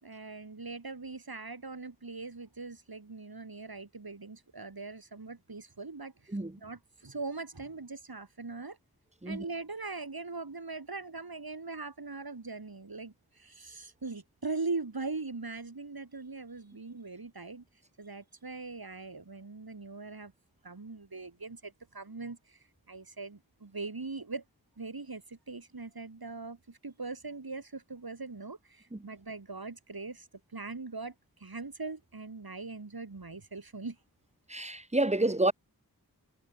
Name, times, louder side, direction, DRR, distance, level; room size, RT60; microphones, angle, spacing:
voice 1, 0.0-8.8 9.2-17.6 18.0-20.3 20.6-22.6 22.9-24.4 24.8-30.3 30.5-31.1 31.4-34.0, right 3 dB, 70° right, 3.1 m, -41 dB
voice 2, 6.3-6.6 9.2-9.4 28.9-29.1 34.5-35.5, right 1 dB, 15° right, 1.5 m, -29 dB
wide cardioid pair, 45°, 38 cm